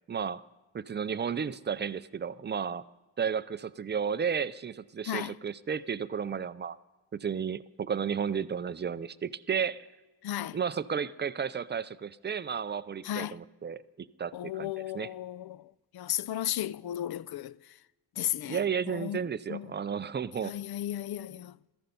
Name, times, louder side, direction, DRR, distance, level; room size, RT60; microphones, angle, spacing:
voice 1, 0.1-0.4 0.7-2.9 3.2-6.8 7.1-9.9 10.5-15.1 18.5-20.5, right 7 dB, 25° right, 0.4 m, -33 dB
voice 2, 5.1-5.4 10.2-10.6 13.0-13.4 14.3-17.6 18.2-18.6 18.9-19.2 19.5-19.7 20.4-21.6, left 12 dB, 55° left, 0.5 m, -34 dB
15.5 x 14.0 x 5.4 m
cardioid pair, 105°, 47 cm